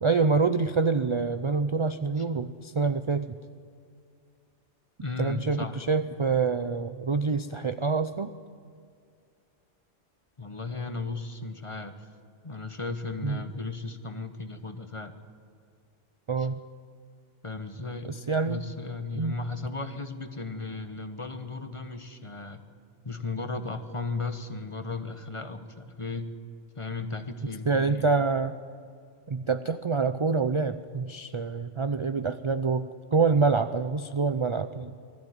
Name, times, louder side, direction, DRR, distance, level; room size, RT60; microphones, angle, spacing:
voice 1, 0.0-3.4 5.2-8.3 13.2-13.4 16.3-16.6 18.0-18.6 19.2-19.4 27.7-28.6 29.3-35.0, right 4 dB, 40° right, 11 dB, 0.4 m, -26 dB
voice 2, 5.0-5.8 10.4-12.1 12.4-15.2 16.4-16.5 17.4-18.1 18.4-22.6 23.0-26.3 26.8-28.1, left 3 dB, 25° left, 8 dB, 1.2 m, -35 dB
20.5 x 14.0 x 9.6 m, 2.3 s
omnidirectional pair, 1.2 m